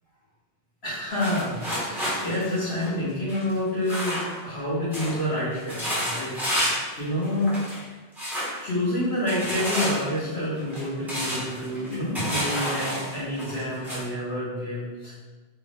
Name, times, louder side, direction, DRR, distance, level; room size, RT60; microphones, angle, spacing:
voice 1, 0.8-4.2 4.4-6.4 7.0-7.6 8.6-15.1, left 1 dB, 80° left, -12 dB, 1.5 m, -28 dB
sound 1, 1.1-4.6 4.9-5.2 5.5-6.9 7.2-7.8 8.2-8.6 9.3-14.0, equal, ahead, 1.0 m, -30 dB
3.5 x 2.4 x 3.4 m, 1.2 s
omnidirectional pair, 1.0 m